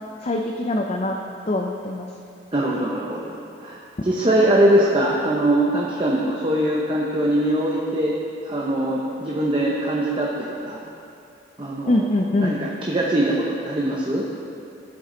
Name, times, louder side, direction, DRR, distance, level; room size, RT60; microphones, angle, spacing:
voice 1, 0.2-1.2 1.5-2.1 11.9-12.5, left 2 dB, 35° left, 2 dB, 0.5 m, -23 dB
voice 2, 2.5-3.4 3.6-8.2 8.4-10.8 11.6-12.1 12.4-14.2, right 1 dB, 25° right, -4 dB, 0.9 m, -22 dB
14.0 x 8.3 x 3.9 m, 2.6 s
head